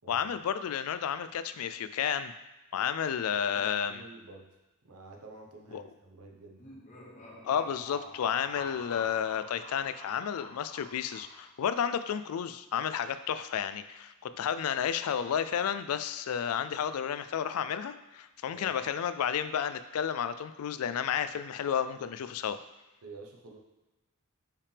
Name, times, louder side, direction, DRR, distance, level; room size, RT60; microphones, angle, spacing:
voice 1, 0.1-2.3 2.7-4.0 5.7-5.8 7.4-22.6, left 8 dB, 75° left, 12 dB, 0.3 m, -31 dB
voice 2, 3.3-4.5 4.8-6.7 18.5-18.7 23.0-23.6, right 3 dB, 90° right, 0 dB, 0.9 m, -50 dB
sound 1, 6.5-11.7, left 2 dB, 35° left, 0.9 m, -48 dB
5.6 x 5.0 x 3.4 m, 1.0 s
head